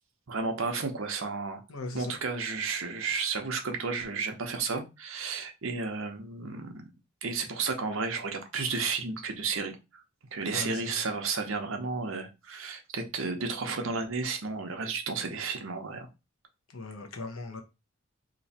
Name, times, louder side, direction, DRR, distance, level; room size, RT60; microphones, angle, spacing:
voice 1, 0.3-1.6 1.9-6.8 7.2-10.0 10.3-16.1, right 4 dB, 70° right, 0.8 m, -32 dB
voice 2, 1.7-2.1 10.5-11.0 16.7-17.6, left 3 dB, 85° left, 0.8 m, -39 dB
3.0 x 2.6 x 4.1 m
head